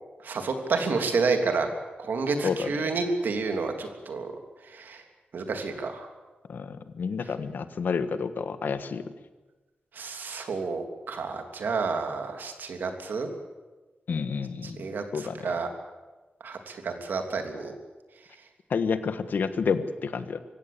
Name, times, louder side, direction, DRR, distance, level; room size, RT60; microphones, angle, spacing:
voice 1, 0.2-1.7 2.0-4.3 4.6-5.0 5.3-6.1 9.9-13.3 14.8-15.7 16.4-17.7, right 4 dB, 80° right, 5 dB, 3.1 m, -30 dB
voice 2, 2.4-2.7 6.5-9.1 14.1-14.8 15.1-15.5 18.7-20.4, left 5 dB, 75° left, 11 dB, 1.4 m, -29 dB
24.5 x 16.0 x 8.6 m, 1.2 s
wide cardioid pair, 135°, 3 cm